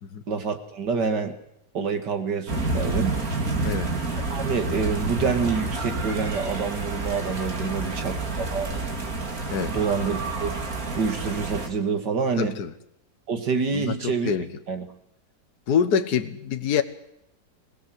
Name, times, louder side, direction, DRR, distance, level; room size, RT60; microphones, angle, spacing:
voice 1, 0.3-1.3 1.7-3.2 4.3-8.2 8.5-8.7 9.6-10.7 11.0-12.5 13.3-14.3 14.7-14.9, right 5 dB, 65° right, 7 dB, 2.8 m, -27 dB
sound 1, 2.5-11.7, right 2 dB, 50° right, 3.0 m, -29 dB
voice 2, 7.6-8.0 9.5-9.8 12.4-12.7 13.7-14.5 15.7-16.8, left 7 dB, 60° left, 8 dB, 1.7 m, -26 dB
25.0 x 17.0 x 7.9 m, 0.80 s
omnidirectional pair, 2.0 m